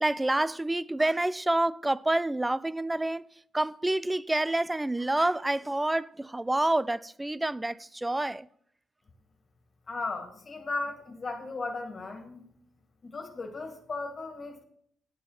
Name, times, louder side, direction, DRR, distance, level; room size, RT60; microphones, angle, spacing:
voice 1, 0.0-3.3 3.5-8.5, right 1 dB, 10° right, 0.4 m, -28 dB
voice 2, 9.9-12.4 13.0-14.6, left 3 dB, 40° left, 2.0 m, -36 dB
10.0 x 7.3 x 7.4 m
cardioid pair, 90°, 0 cm